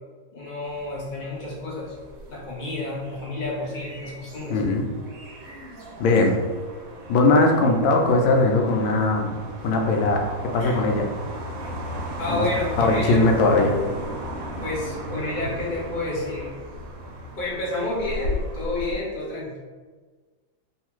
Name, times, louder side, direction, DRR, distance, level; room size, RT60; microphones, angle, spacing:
voice 1, 0.3-1.9 2.3-4.6 10.6-10.8 12.2-13.3 14.6-16.5 17.4-19.6, left 2 dB, 45° left, -6 dB, 0.6 m, -30 dB
sound 1, 0.6-19.0, equal, 85° right, 1.4 m, -36 dB
voice 2, 4.5-4.9 6.0-6.4 7.1-9.3 9.6-10.2 10.5-11.0 12.3-12.4 12.8-13.8, left 2 dB, 85° left, 2 dB, 1.3 m, -19 dB
3.4 x 2.4 x 2.9 m, 1.4 s
omnidirectional pair, 2.1 m